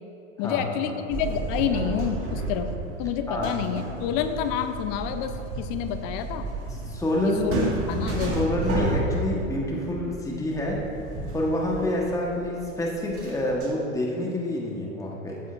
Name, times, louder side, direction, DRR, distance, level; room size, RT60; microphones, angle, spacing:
voice 1, 0.4-2.7 3.0-6.5 7.4-7.5 7.9-8.5, left 9 dB, 45° left, 8 dB, 0.8 m, -28 dB
sound 1, 1.1-13.7, right 2 dB, 35° right, 2.0 m, -32 dB
voice 2, 6.9-7.5 8.3-10.9 11.3-15.4, left 1 dB, 10° left, -2 dB, 1.4 m, -27 dB
14.5 x 7.0 x 2.6 m, 2.7 s
hypercardioid pair, 95°, 40 cm